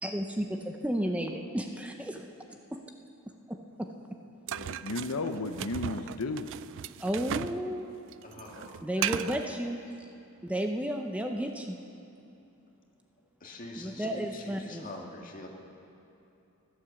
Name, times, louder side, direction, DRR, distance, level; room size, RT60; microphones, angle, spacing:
voice 1, 0.0-2.2 2.7-2.8 3.5-3.9 7.0-7.9 8.8-10.1 10.4-11.8 13.8-14.9, equal, 5° right, 4 dB, 0.6 m, -33 dB
voice 2, 4.5-6.5, left 3 dB, 80° left, 7 dB, 0.7 m, -34 dB
sound 1, 4.5-7.6 7.9-9.5, right 10 dB, 60° right, 0.3 m, -36 dB
voice 3, 8.2-9.2 13.4-15.5, left 2 dB, 40° left, 0 dB, 1.9 m, -44 dB
14.5 x 11.5 x 7.1 m, 2.8 s
head